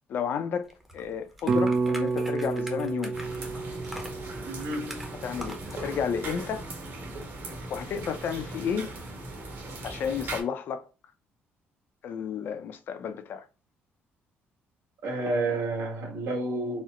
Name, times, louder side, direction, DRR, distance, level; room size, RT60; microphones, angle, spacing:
voice 1, 0.1-3.2 5.2-6.7 7.7-8.9 9.8-10.9 12.0-13.5, left 7 dB, 55° left, 0.5 m, -32 dB
sound 1, 0.7-5.8, equal, 5° right, 0.7 m, -44 dB
sound 2, 1.5-5.7, right 4 dB, 40° right, 0.3 m, -30 dB
sound 3, 3.1-10.4, right 2 dB, 55° right, 1.3 m, -39 dB
voice 2, 4.4-5.1 15.0-16.8, right 2 dB, 85° right, 1.5 m, -30 dB
4.2 x 2.1 x 2.4 m
cardioid pair, 160°, 4 cm